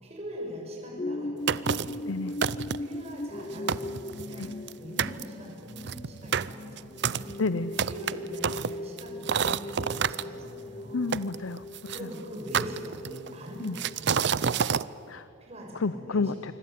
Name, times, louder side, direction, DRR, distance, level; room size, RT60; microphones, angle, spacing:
voice 1, 0.0-2.1 2.8-4.5 4.8-7.3 7.9-11.2 11.9-14.4 15.4-16.5, equal, 30° right, -1 dB, 6.7 m, -42 dB
sound 1, 1.0-14.5 15.0-15.1, left 1 dB, 30° left, 0.6 m, -40 dB
sound 2, 1.5-2.0 2.4-3.0 3.4-3.5 3.7-4.7 5.0-5.2 5.8-10.2 11.1-12.0 12.5-13.3 13.8-14.9, right 7 dB, 55° right, 0.6 m, -28 dB
voice 2, 7.4-7.8 10.9-11.9 13.6-13.8 15.1-15.3 15.7-16.5, left 3 dB, 80° left, 14 dB, 0.7 m, -30 dB
26.0 x 24.0 x 9.4 m, 3.0 s
head